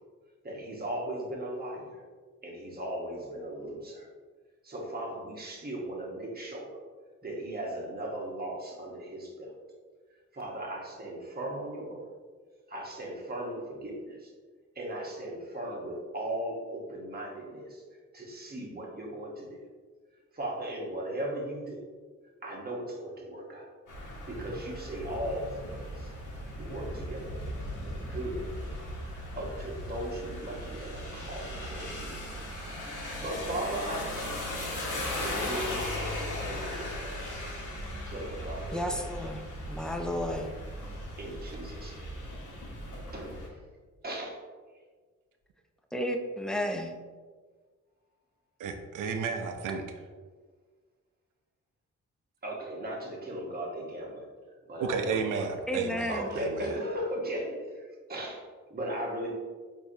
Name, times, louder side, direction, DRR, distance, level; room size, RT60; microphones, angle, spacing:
voice 1, 0.4-2.0 2.4-4.1 4.6-6.8 7.2-9.5 10.3-12.1 12.7-14.3 14.7-17.8 18.1-19.6 20.3-21.9 22.4-23.7 24.2-26.1 26.6-27.4 27.8-28.5 29.4-32.4 33.2-34.3 35.2-37.4 38.0-39.0 41.2-42.2 43.1-43.6 44.0-44.3 52.4-54.3 54.6-55.5 56.1-58.4 58.7-59.3, right 1 dB, 30° right, -2 dB, 1.1 m, -37 dB
sound 1, 23.9-43.5, left 1 dB, 75° left, 1.1 m, -38 dB
voice 2, 38.7-40.5 45.9-47.0 55.7-56.3, left 1 dB, ahead, 4 dB, 0.4 m, -32 dB
voice 3, 48.6-49.8 54.8-56.6, right 5 dB, 80° right, 6 dB, 0.5 m, -32 dB
4.5 x 2.7 x 2.7 m, 1.5 s
cardioid pair, 55°, 31 cm